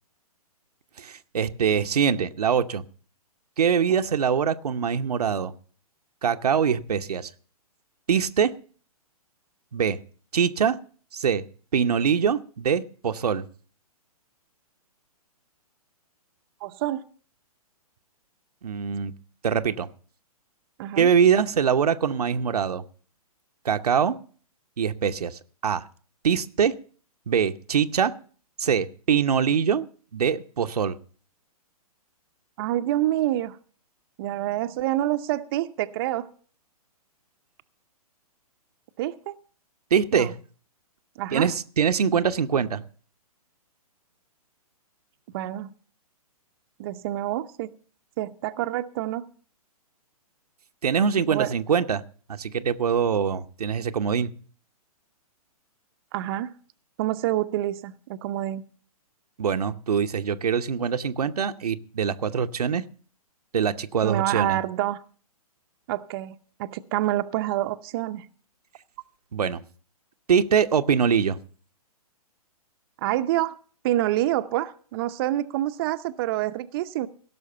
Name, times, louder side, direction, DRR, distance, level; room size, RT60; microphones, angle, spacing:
voice 1, 1.0-2.8 3.6-5.5 6.2-7.3 8.1-8.5 9.7-10.0 10.3-10.8 11.1-11.4 11.7-13.5 18.6-19.1 19.4-19.9 21.0-22.8 23.6-24.2 24.8-25.8 26.2-26.7 27.3-28.2 28.6-29.9 30.1-31.0 39.9-40.4 41.3-42.8 50.8-52.0 52.3-54.3 59.4-62.8 63.5-64.6 69.3-69.6 70.3-71.4, right 7 dB, 80° right, 9 dB, 0.8 m, -23 dB
voice 2, 16.6-17.0 20.8-21.1 32.6-33.6 34.2-36.3 39.0-39.3 40.1-40.3 41.2-41.5 45.3-45.7 46.8-47.7 48.2-49.2 51.3-51.5 56.1-56.5 57.0-58.6 64.0-65.0 65.9-68.3 73.0-73.6 73.8-77.1, right 14 dB, 40° right, 10 dB, 0.6 m, -27 dB
16.5 x 6.4 x 6.8 m, 0.44 s
hypercardioid pair, 135°, 19 cm